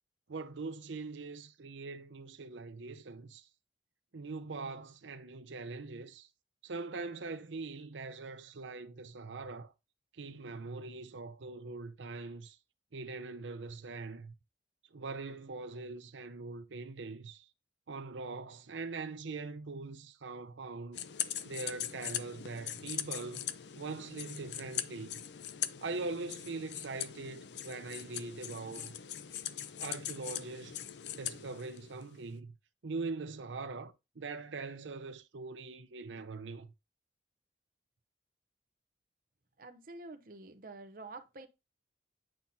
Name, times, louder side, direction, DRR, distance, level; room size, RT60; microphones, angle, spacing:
voice 1, 0.3-3.5 4.1-6.3 6.6-9.7 10.1-12.6 12.9-14.3 14.9-17.5 17.9-21.0 21.4-23.5 23.8-25.2 25.8-29.0 29.8-30.8 31.1-32.5 32.8-36.7, right 3 dB, 90° right, 0.7 m, -42 dB
sound 1, 20.9-32.2, left 10 dB, 70° left, 0.5 m, -41 dB
voice 2, 39.6-41.5, right 2 dB, 50° right, 0.7 m, -48 dB
8.9 x 5.7 x 2.7 m
head